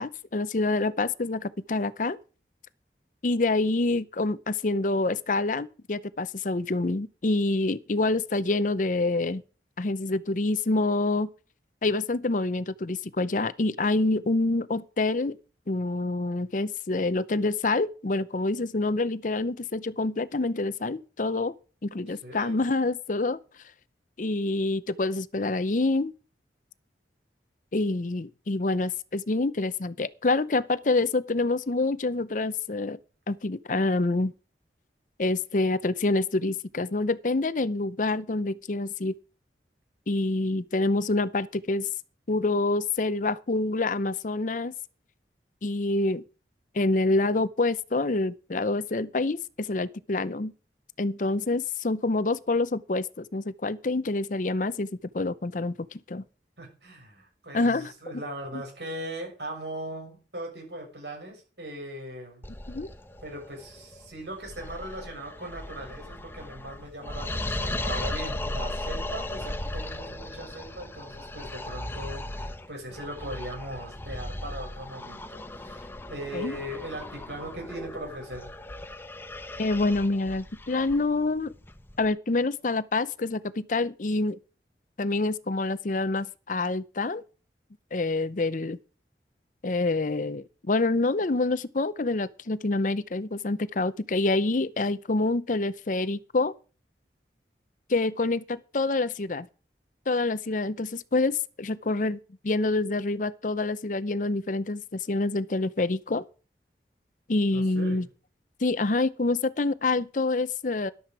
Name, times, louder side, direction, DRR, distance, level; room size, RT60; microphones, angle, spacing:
voice 1, 0.0-2.2 3.2-9.4 9.8-11.3 11.8-15.4 15.7-21.5 21.8-23.4 24.2-26.1 27.7-33.0 33.3-34.3 35.2-39.1 40.1-41.9 42.3-44.7 45.6-46.2 46.7-50.5 51.0-54.9 55.1-56.2 57.5-57.9 58.5-58.6 62.7-62.9 76.3-76.6 79.6-81.5 82.0-84.4 85.0-87.2 87.9-88.8 89.6-96.5 97.9-99.5 100.1-102.2 102.4-106.2 107.3-108.1 108.6-110.9, left 2 dB, 45° left, 0.7 m, -27 dB
voice 2, 22.1-22.6 56.6-62.4 63.2-78.5 107.5-108.1, right 1 dB, 75° right, 7.0 m, -39 dB
sound 1, 62.4-82.1, left 1 dB, 15° left, 0.8 m, -37 dB
13.5 x 11.5 x 4.8 m
head